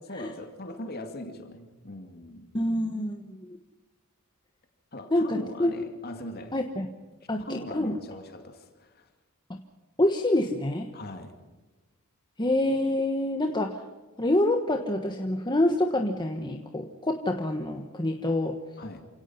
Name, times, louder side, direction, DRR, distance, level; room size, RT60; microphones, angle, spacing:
voice 1, 0.1-2.5 4.9-6.6 7.4-9.1 10.9-11.3 18.8-19.0, left 1 dB, 45° left, 5 dB, 2.6 m, -40 dB
voice 2, 2.5-3.6 5.1-5.8 6.5-6.9 7.3-7.9 10.0-10.9 12.4-13.8 14.2-18.6, left 1 dB, 20° left, 4 dB, 1.3 m, -26 dB
29.0 x 17.5 x 5.8 m, 1.2 s
head